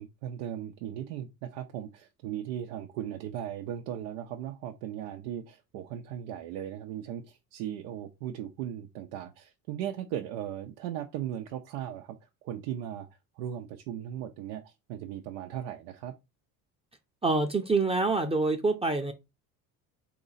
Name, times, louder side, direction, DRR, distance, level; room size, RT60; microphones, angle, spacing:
voice 1, 0.0-12.2 12.4-13.1 13.4-16.1, right 10 dB, 85° right, 0.7 m, -37 dB
voice 2, 17.2-19.1, right 3 dB, 15° right, 0.6 m, -26 dB
4.0 x 3.0 x 3.9 m
supercardioid pair, 90°, 43 cm